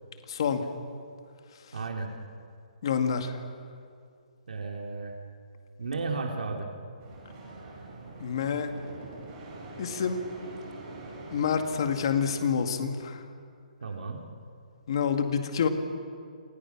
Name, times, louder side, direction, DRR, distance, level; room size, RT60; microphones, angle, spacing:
voice 1, 0.3-0.7 2.8-3.4 8.2-8.7 9.8-10.2 11.3-13.2 14.9-15.7, left 6 dB, 35° left, 6 dB, 2.1 m, -27 dB
voice 2, 1.7-2.1 4.5-5.2 5.8-6.7 13.8-14.2, right 4 dB, 85° right, 1 dB, 3.2 m, -33 dB
sound 1, 7.0-12.3, right 2 dB, 20° right, 5.5 m, -44 dB
29.5 x 28.5 x 6.1 m, 2.3 s
hypercardioid pair, 180°, 4 cm